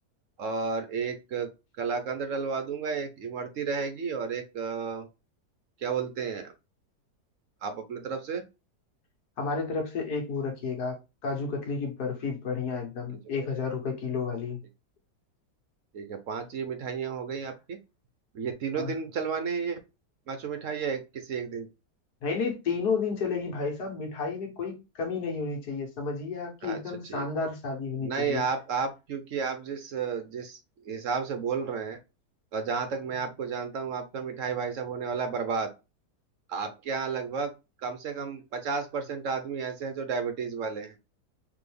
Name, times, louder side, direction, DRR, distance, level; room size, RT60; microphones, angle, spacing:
voice 1, 0.4-1.5 1.8-5.1 5.8-6.5 7.6-8.4 13.1-13.2 15.9-17.8 18.3-19.8 20.3-21.7 26.6-26.8 27.1-27.2 28.0-30.6 30.8-32.0 32.5-35.7 36.5-37.5 37.8-41.0, right 5 dB, 60° right, 0.9 m, -32 dB
voice 2, 9.4-14.6 18.7-18.9 22.2-28.4, left 4 dB, 65° left, 1.7 m, -31 dB
4.1 x 3.1 x 3.3 m
omnidirectional pair, 1.8 m